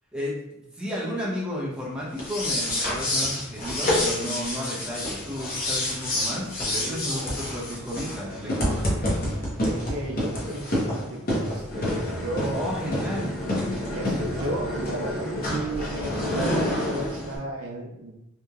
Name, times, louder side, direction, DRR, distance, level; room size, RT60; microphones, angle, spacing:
voice 1, 0.1-9.1 12.5-13.4, equal, 5° right, -7 dB, 0.6 m, -33 dB
sound 1, 2.1-17.4, left 1 dB, 45° left, 0.7 m, -28 dB
voice 2, 6.7-7.3 9.6-12.7 13.9-18.2, right 1 dB, 85° right, -1 dB, 0.6 m, -34 dB
2.8 x 2.1 x 2.3 m, 0.86 s
head